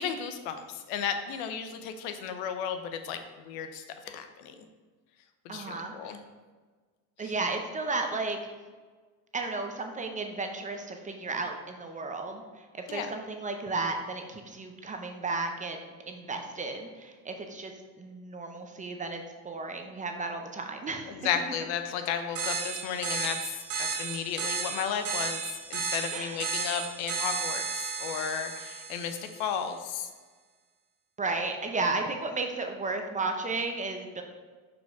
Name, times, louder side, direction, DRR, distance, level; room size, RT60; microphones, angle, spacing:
voice 1, 0.0-4.5 5.4-6.2 7.2-7.3 12.9-13.1 21.1-25.4 25.7-30.1, left 7 dB, 80° left, 8 dB, 0.8 m, -34 dB
voice 2, 5.5-6.2 7.2-8.4 9.3-12.4 12.7-17.7 18.0-21.3 26.1-26.4 31.2-34.2, right 3 dB, 20° right, 4 dB, 0.5 m, -34 dB
sound 1, 22.4-29.5, right 5 dB, 70° right, 1.7 m, -34 dB
5.8 x 5.1 x 3.5 m, 1.4 s
cardioid pair, 120°, 43 cm